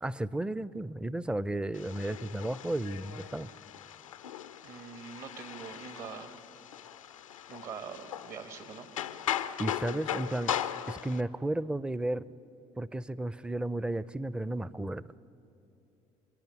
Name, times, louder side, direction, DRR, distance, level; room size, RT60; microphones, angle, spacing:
voice 1, 0.0-3.5 9.6-10.5 10.9-12.2 12.8-15.0, right 1 dB, 5° right, 19 dB, 0.4 m, -33 dB
sound 1, 1.7-11.2, left 10 dB, 90° left, 0.4 m, -38 dB
voice 2, 4.6-6.4 7.5-8.9, right 6 dB, 55° right, 9 dB, 1.8 m, -44 dB
25.0 x 10.5 x 9.9 m, 3.0 s
hypercardioid pair, 55°, 16 cm